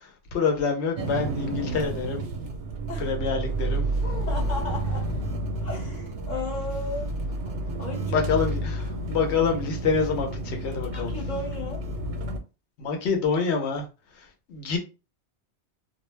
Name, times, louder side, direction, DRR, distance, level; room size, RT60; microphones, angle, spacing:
voice 1, 0.0-2.2 3.0-3.9 8.1-11.1 12.8-13.9 14.1-14.8, left 5 dB, 75° left, 1.0 m, -27 dB
sound 1, 1.0-12.4, right 2 dB, 80° right, 0.9 m, -30 dB
sound 2, 3.9-5.3 7.1-8.0 8.3-8.4 8.8-9.1, equal, 15° left, 0.6 m, -38 dB
voice 2, 4.3-5.0 5.6-7.1 7.8-8.2 10.9-11.8, left 3 dB, 45° left, 0.9 m, -35 dB
2.3 x 2.1 x 3.1 m
omnidirectional pair, 1.2 m